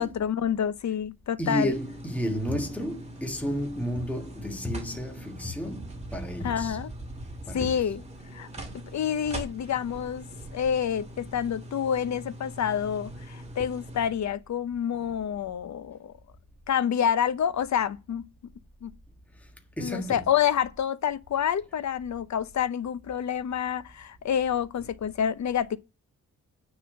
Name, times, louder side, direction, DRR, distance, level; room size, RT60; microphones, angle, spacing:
voice 1, 0.0-1.7 6.4-6.9 7.5-8.0 8.3-8.5 8.9-10.3 10.5-16.1 16.7-18.2 18.8-18.9 19.8-25.8, left 8 dB, 60° left, 0.8 m, -28 dB
voice 2, 1.4-6.8 7.5-7.7 19.8-20.2, equal, 5° left, 1.5 m, -32 dB
sound 1, 1.7-14.1, right 1 dB, 20° right, 2.3 m, -42 dB
9.4 x 4.3 x 6.2 m
wide cardioid pair, 140°, 32 cm